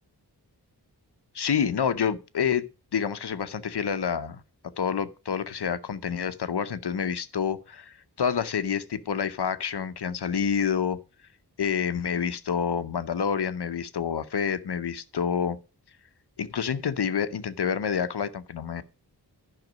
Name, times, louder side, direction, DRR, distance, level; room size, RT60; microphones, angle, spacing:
voice 1, 1.3-2.6 2.9-4.4 4.8-11.0 11.6-15.6 16.4-18.8, left 7 dB, 75° left, 0.8 m, -28 dB
11.0 x 5.8 x 5.1 m
wide cardioid pair, 65°, 40 cm